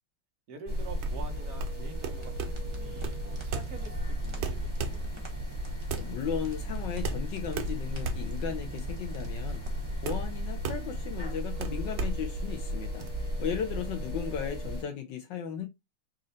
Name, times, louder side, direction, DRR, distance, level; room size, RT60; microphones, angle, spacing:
voice 1, 0.5-5.1, right 3 dB, 55° right, 1.2 m, -47 dB
sound 1, 0.7-14.8, equal, 25° right, 1.4 m, -35 dB
sound 2, 0.9-13.1, right 6 dB, 80° right, 1.5 m, -39 dB
sound 3, 2.2-10.1, left 1 dB, 40° right, 0.4 m, -49 dB
voice 2, 5.9-9.6 10.0-13.0 13.4-15.7, left 8 dB, 70° left, 1.3 m, -36 dB
4.3 x 2.6 x 3.8 m
omnidirectional pair, 2.3 m